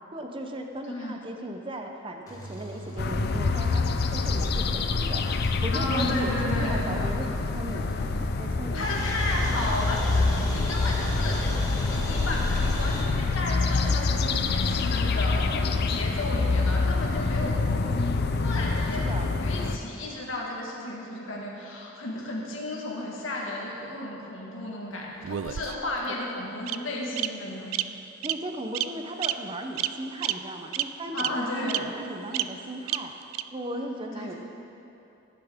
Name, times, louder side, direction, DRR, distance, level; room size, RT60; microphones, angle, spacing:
voice 1, 0.1-5.2 5.6-7.9 8.4-8.9 19.0-19.3 28.2-33.1 33.5-34.3, right 1 dB, 25° right, 4 dB, 0.7 m, -37 dB
voice 2, 0.8-1.3 5.7-6.8 8.7-11.4 11.9-17.6 18.4-27.7 31.1-31.9 34.1-34.4, left 1 dB, 70° left, -2 dB, 1.9 m, -33 dB
sound 1, 2.3-4.9 5.1-5.2 5.4-5.5 6.0-8.5 8.8-13.0, right 1 dB, 15° left, 1.2 m, -36 dB
sound 2, 3.0-19.8, left 3 dB, 50° left, 0.5 m, -26 dB
Bird vocalization bird call bird song, 25.2-26.0 26.7-26.8 27.2-27.3 27.7-27.8 28.2-28.4 28.7-28.9 29.2-29.3 29.8-29.9 30.2-30.3 30.7-30.8 31.2-31.3 31.7-31.8 32.3-32.4 32.9-33.0 33.3-33.4, right 14 dB, 80° right, 0.3 m, -28 dB
15.5 x 10.5 x 3.7 m, 2.9 s
head